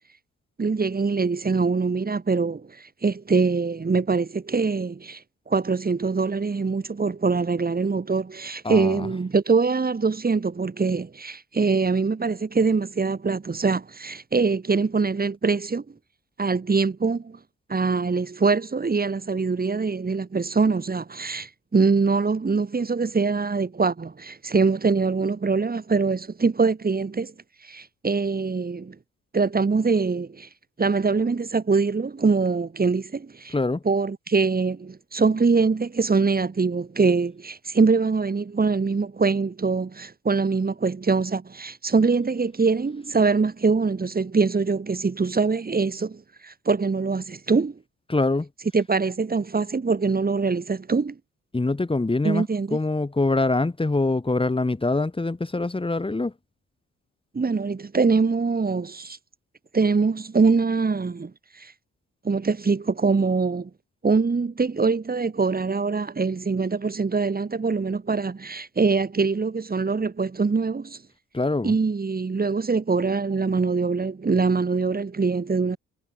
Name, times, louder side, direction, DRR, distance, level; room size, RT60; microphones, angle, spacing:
voice 1, 0.6-2.7 3.0-5.2 5.5-15.8 16.4-17.4 17.7-27.3 27.6-29.0 29.3-30.5 30.8-33.5 33.8-47.8 48.7-51.1 52.2-52.8 57.3-59.2 59.7-61.3 61.6-61.7 62.2-63.7 64.0-71.0 71.6-75.8, right 4 dB, 30° right, 7.9 m, -23 dB
voice 2, 8.6-9.1 33.5-33.8 48.1-48.5 51.5-52.4 52.7-56.3 71.3-71.7, left 2 dB, 15° left, 5.8 m, -24 dB
cardioid pair, 90°, 30 cm